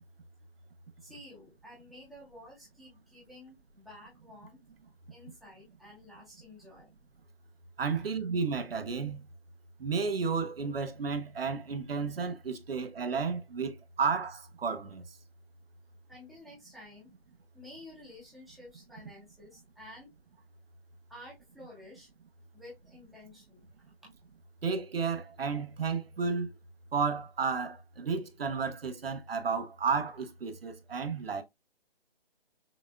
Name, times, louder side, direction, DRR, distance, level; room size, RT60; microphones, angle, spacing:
voice 1, 1.0-4.6 5.1-7.0 16.1-17.1 17.5-20.1 21.1-22.1 22.5-23.9, left 1 dB, ahead, 0.5 m, -51 dB
voice 2, 7.8-9.2 9.8-15.0 24.6-26.5 26.9-31.4, right 5 dB, 75° right, 1.0 m, -32 dB
6.1 x 2.3 x 2.3 m
hypercardioid pair, 155°, 30 cm